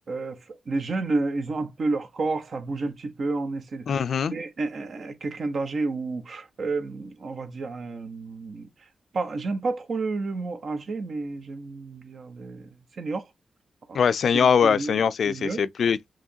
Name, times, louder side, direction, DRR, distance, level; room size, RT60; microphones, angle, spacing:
voice 1, 0.1-0.4 0.7-3.9 4.3-8.7 9.1-12.6 13.0-13.3 13.9-14.0 14.6-15.0 15.2-15.6, right 3 dB, 60° right, 0.8 m, -30 dB
voice 2, 3.9-4.3 13.9-16.0, left 7 dB, 75° left, 0.3 m, -22 dB
4.7 x 3.0 x 2.7 m
cardioid pair, 80°, 0 cm